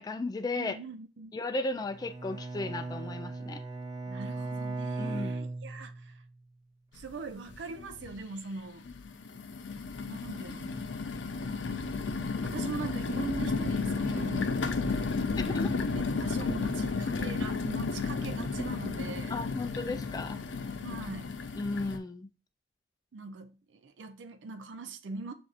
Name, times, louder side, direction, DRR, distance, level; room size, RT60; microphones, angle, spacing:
voice 1, 0.0-0.8 1.3-3.6 5.0-5.4 15.4-15.8 19.3-20.4 21.6-22.3, left 2 dB, 20° left, 0.3 m, -35 dB
voice 2, 0.6-1.3 4.1-6.2 6.9-8.9 10.1-10.7 12.4-14.5 14.9-15.0 15.4-15.6 15.9-19.4 20.8-21.4 23.1-25.3, right 4 dB, 85° right, 0.4 m, -42 dB
Bowed string instrument, 1.9-6.3, right 3 dB, 20° right, 0.6 m, -37 dB
sound 1, 7.0-7.1 7.5-8.1 8.8-22.0, left 4 dB, 85° left, 0.5 m, -33 dB
7.3 x 2.6 x 2.4 m
head